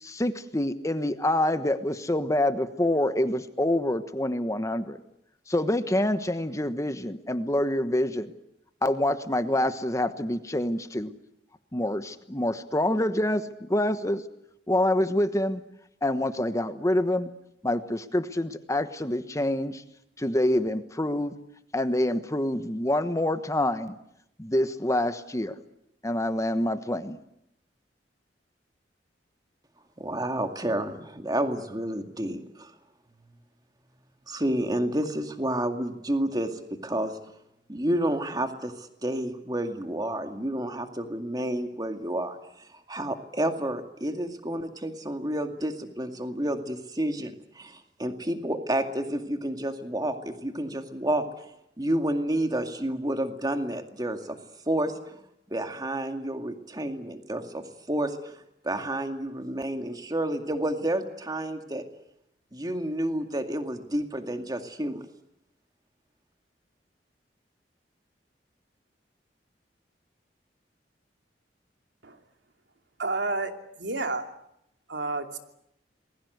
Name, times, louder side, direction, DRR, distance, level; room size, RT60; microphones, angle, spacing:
voice 1, 0.0-5.0 5.5-8.3 8.8-11.1 11.7-13.4 13.7-14.2 14.7-15.6 16.0-17.3 17.6-19.8 20.2-21.3 21.7-23.9 24.4-25.5 26.0-27.2, left 1 dB, 20° left, 10 dB, 1.2 m, -26 dB
voice 2, 30.0-32.7 34.3-37.2 37.7-51.3 51.8-54.4 54.7-55.2 55.5-61.8 62.5-65.0, right 1 dB, 20° right, 6 dB, 2.2 m, -30 dB
voice 3, 73.0-74.3 74.9-75.4, right 3 dB, 85° right, 6 dB, 2.7 m, -30 dB
27.5 x 21.5 x 8.0 m, 0.78 s
head